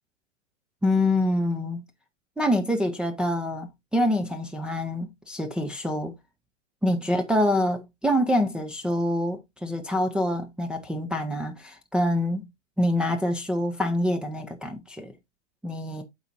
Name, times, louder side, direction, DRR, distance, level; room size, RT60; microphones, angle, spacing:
voice 1, 0.8-1.8 2.4-6.1 6.8-12.5 12.8-15.1 15.6-16.0, left 1 dB, 5° right, 0.3 m, -26 dB
11.5 x 4.0 x 2.6 m
hypercardioid pair, 105°, 36 cm